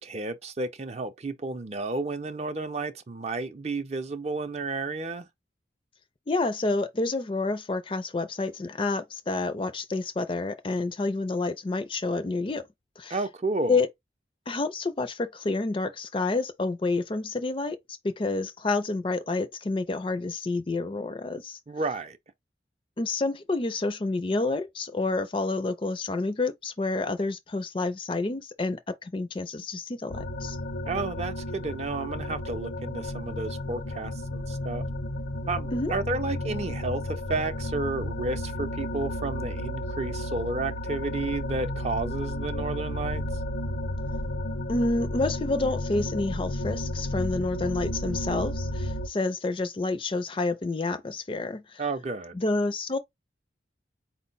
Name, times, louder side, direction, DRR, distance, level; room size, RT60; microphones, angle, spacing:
voice 1, 0.0-5.3 13.1-13.8 21.7-22.2 30.9-34.8 35.5-43.2 51.8-52.4, right 3 dB, 35° right, 0.5 m, -32 dB
voice 2, 6.3-12.6 13.0-13.2 13.7-13.9 14.5-21.6 23.0-30.6 35.7-35.9 44.7-51.8 52.3-53.0, left 3 dB, 30° left, 0.4 m, -29 dB
sound 1, 30.1-49.1, left 1 dB, 75° left, 0.7 m, -32 dB
4.4 x 2.1 x 4.0 m
head